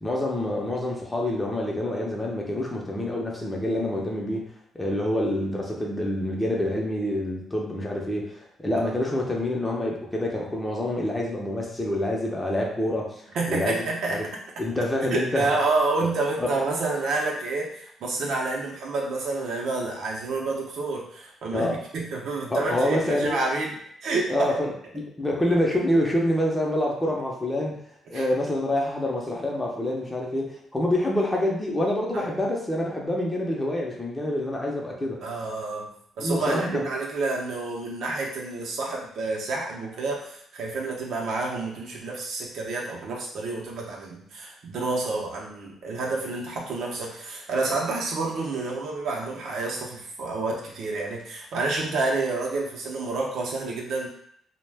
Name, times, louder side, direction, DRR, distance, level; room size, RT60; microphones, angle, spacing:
voice 1, 0.0-14.3 14.6-15.5 16.4-16.5 21.5-21.8 22.5-23.4 24.3-27.8 28.1-35.2 36.2-36.9, left 1 dB, 15° left, -2 dB, 0.7 m, -27 dB
voice 2, 13.3-14.3 15.1-23.8 24.0-24.5 28.1-28.2 32.1-32.3 35.2-54.1, right 3 dB, 70° right, -2 dB, 0.7 m, -29 dB
2.3 x 2.1 x 3.3 m, 0.67 s
cardioid pair, 90°, 0 cm